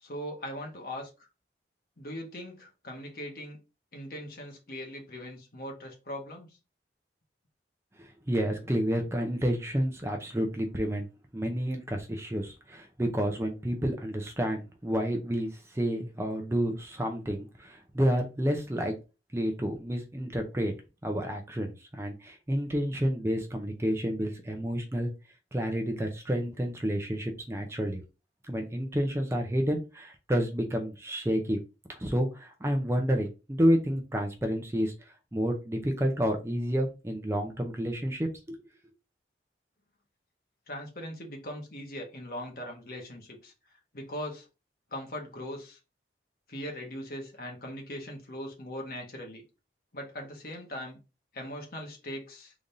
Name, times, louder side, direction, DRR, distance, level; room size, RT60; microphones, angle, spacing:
voice 1, 0.0-1.3 2.0-3.6 3.9-6.6 40.7-43.5 43.9-44.5 44.9-45.8 46.5-49.4 49.9-51.0 51.3-52.5, equal, 55° left, 1 dB, 1.3 m, -40 dB
voice 2, 8.0-11.1 11.3-18.9 19.3-20.7 21.0-25.1 25.5-28.0 28.5-31.6 31.9-34.9 35.3-38.6, equal, 15° right, 3 dB, 0.5 m, -30 dB
3.8 x 3.4 x 2.6 m, 0.29 s
head